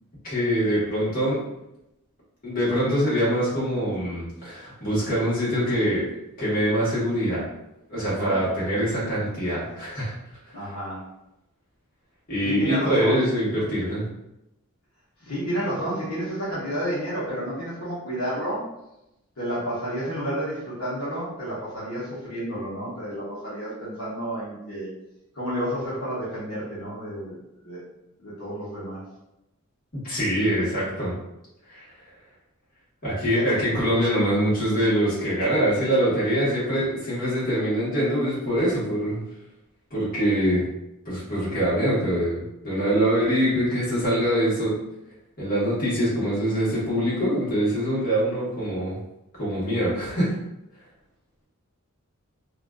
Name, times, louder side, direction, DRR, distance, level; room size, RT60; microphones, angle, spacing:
voice 1, 0.2-1.4 2.4-6.1 6.4-7.4 7.9-10.1 12.3-14.0 30.0-31.1 31.7-31.8 33.0-39.2 39.9-40.6 41.0-44.7 45.4-49.0 49.4-50.3, equal, 40° left, -8 dB, 1.1 m, -24 dB
voice 2, 8.2-8.5 10.5-11.0 12.4-13.7 15.2-18.7 19.4-24.9 25.3-27.4 27.6-27.8 28.2-29.0 33.3-33.4, equal, 60° left, -10 dB, 0.8 m, -31 dB
2.4 x 2.3 x 2.2 m, 0.88 s
head